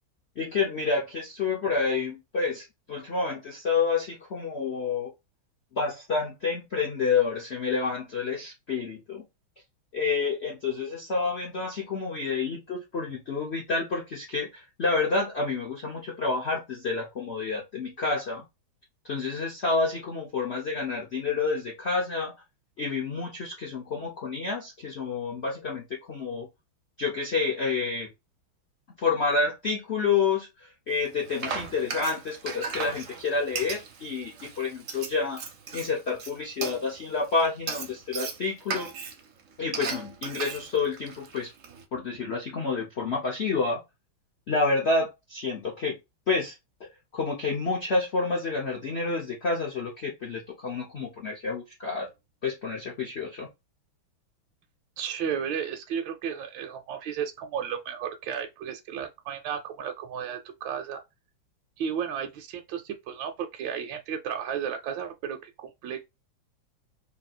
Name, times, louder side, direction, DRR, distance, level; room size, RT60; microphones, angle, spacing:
voice 1, 0.4-5.1 5.8-9.2 9.9-18.4 19.0-22.3 22.8-26.5 27.0-28.1 29.0-35.4 35.7-38.9 39.6-41.5 41.9-43.8 44.5-46.0 46.3-46.5 47.1-52.1 52.4-53.5, left 4 dB, 60° left, 0.7 m, -29 dB
Frying (food), 30.9-41.8, right 5 dB, 60° right, 0.8 m, -37 dB
voice 2, 55.0-61.0 61.8-65.5 65.8-66.0, right 8 dB, 75° right, 1.3 m, -33 dB
3.2 x 2.7 x 4.1 m
omnidirectional pair, 2.2 m